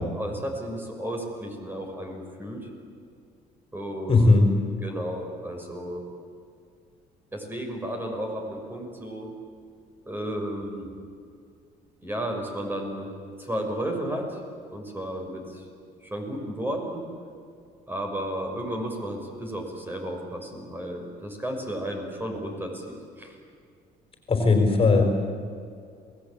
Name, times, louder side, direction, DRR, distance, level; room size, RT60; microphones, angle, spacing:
voice 1, 0.1-2.6 3.7-4.4 4.8-6.0 7.3-9.3 10.1-10.9 12.0-13.1 13.4-14.4 14.7-15.7 16.0-17.0 17.9-23.4, right 1 dB, 10° right, 2 dB, 6.0 m, -33 dB
voice 2, 4.1-4.5 24.3-25.0, left 3 dB, 35° left, 3 dB, 4.5 m, -18 dB
28.0 x 19.5 x 8.8 m, 2.3 s
cardioid pair, 110°, 17 cm